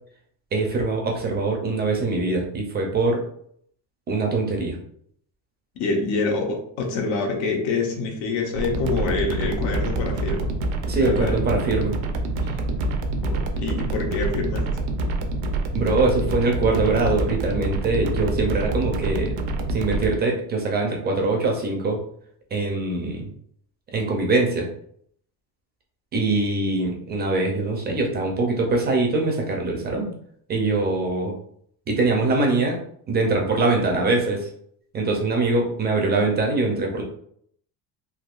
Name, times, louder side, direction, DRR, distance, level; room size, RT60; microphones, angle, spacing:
voice 1, 0.5-3.2 4.1-4.8 10.9-12.0 15.7-19.3 19.7-22.0 22.5-23.3 23.9-24.7 26.1-30.1 30.5-31.4 31.9-32.8 33.1-34.5 34.9-37.0, right 3 dB, 25° right, 1 dB, 0.4 m, -23 dB
voice 2, 5.8-10.6 11.0-11.4 12.4-12.5 13.2-14.7, left 3 dB, 90° left, 1 dB, 1.0 m, -26 dB
sound 1, 8.5-20.2, right 2 dB, 85° right, 0.7 m, -26 dB
3.5 x 2.7 x 2.4 m, 0.64 s
cardioid pair, 175°, 41 cm